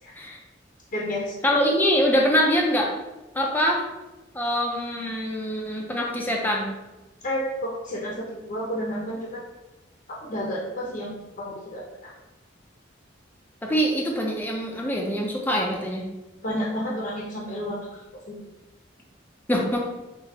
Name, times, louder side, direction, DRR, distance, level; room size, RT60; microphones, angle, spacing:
voice 1, 0.9-1.3 7.2-9.4 10.1-12.1 16.4-18.4, equal, 45° left, -4 dB, 0.7 m, -31 dB
voice 2, 1.4-2.9 3.3-3.8 4.3-6.7 13.6-16.0 19.5-19.8, equal, 10° left, -1 dB, 0.5 m, -24 dB
5.7 x 2.4 x 2.9 m, 1.0 s
head